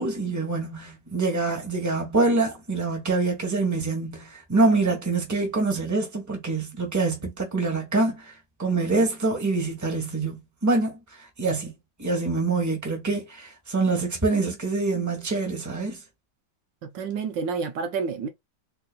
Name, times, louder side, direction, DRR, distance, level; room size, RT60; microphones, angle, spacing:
voice 1, 0.0-8.3 8.6-11.7 12.0-16.0, right 3 dB, 10° right, 1.3 m, -25 dB
voice 2, 16.8-18.3, right 5 dB, 70° right, 1.4 m, -29 dB
3.9 x 3.8 x 2.3 m
omnidirectional pair, 2.1 m